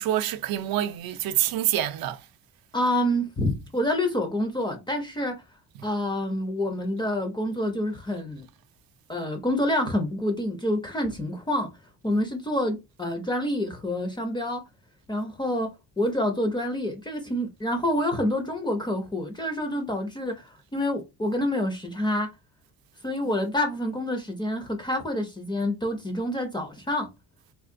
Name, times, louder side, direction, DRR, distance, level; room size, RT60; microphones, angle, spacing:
voice 1, 0.0-2.2, right 12 dB, 65° right, 0.5 m, -26 dB
voice 2, 2.7-5.4 5.8-8.5 9.1-11.7 12.0-14.6 15.1-22.3 23.0-27.1, left 1 dB, 10° left, 0.4 m, -27 dB
3.7 x 2.5 x 2.5 m
cardioid pair, 180°, 38 cm